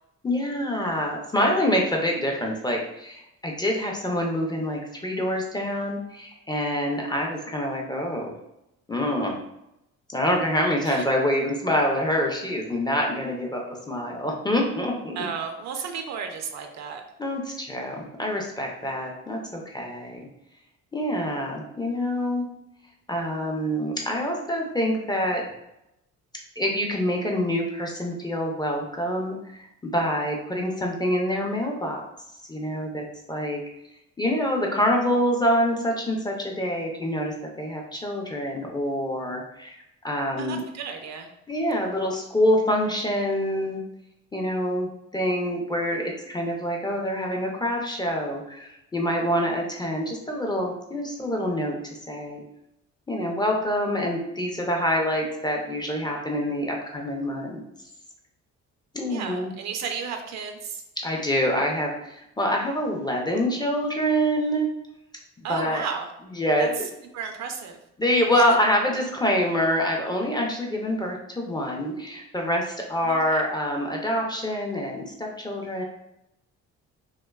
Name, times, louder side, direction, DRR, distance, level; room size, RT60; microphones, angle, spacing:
voice 1, 0.2-8.3 8.9-9.4 10.1-15.2 17.2-20.3 20.9-22.4 23.1-25.4 26.6-32.0 32.5-33.6 34.2-39.8 40.0-40.6 41.5-43.8 44.3-44.9 45.1-51.8 52.1-52.4 53.1-57.6 58.9-59.5 61.0-64.7 65.5-65.8 66.4-66.7 68.0-75.8, equal, 15° left, 0 dB, 0.4 m, -26 dB
voice 2, 15.2-17.0 40.4-41.3 59.1-60.8 65.4-66.1 66.6-66.8 67.1-67.8 68.3-68.4 73.0-73.4, right 6 dB, 65° right, 5 dB, 0.4 m, -33 dB
2.6 x 2.2 x 2.2 m, 0.83 s
cardioid pair, 90°, 30 cm